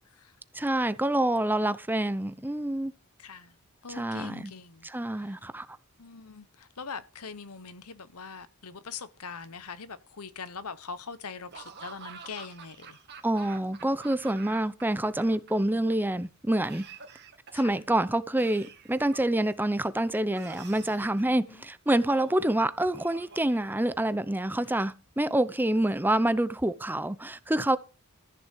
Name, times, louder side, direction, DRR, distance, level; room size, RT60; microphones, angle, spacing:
voice 1, 0.5-2.9 3.9-4.5 4.8-5.7 13.2-16.8 17.5-27.8, right 1 dB, 10° right, 0.6 m, -27 dB
voice 2, 3.2-3.6 3.8-4.9 5.2-5.4 6.0-13.0 17.5-17.8 21.2-21.6, left 5 dB, 85° left, 1.1 m, -42 dB
Laughter / Cough, 11.5-14.8 15.1-15.9 16.6-17.7 18.4-19.6 20.3-21.3 21.9-22.5 22.9-24.1, right 5 dB, 50° right, 2.2 m, -48 dB
14.0 x 6.7 x 7.5 m
head